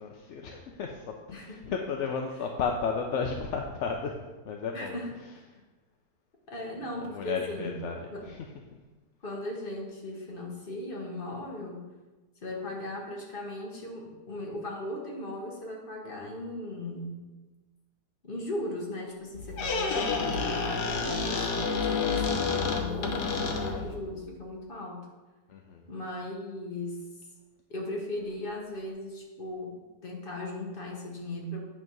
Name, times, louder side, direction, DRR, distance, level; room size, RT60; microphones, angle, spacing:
voice 1, 0.0-1.1 1.4-4.2 4.4-5.0 7.1-8.0 8.3-8.4 25.5-25.9, left 5 dB, 60° left, 2 dB, 0.8 m, -33 dB
voice 2, 1.3-1.7 4.7-5.2 6.5-7.8 8.1-8.3 9.2-11.8 12.4-17.2 18.2-21.4 21.8-25.1 25.9-27.0 27.7-29.7 30.0-31.6, left 1 dB, 35° left, 0 dB, 1.4 m, -37 dB
Squeak, 19.3-24.0, left 4 dB, 90° left, 1.5 m, -29 dB
8.9 x 3.5 x 6.0 m, 1.2 s
omnidirectional pair, 1.7 m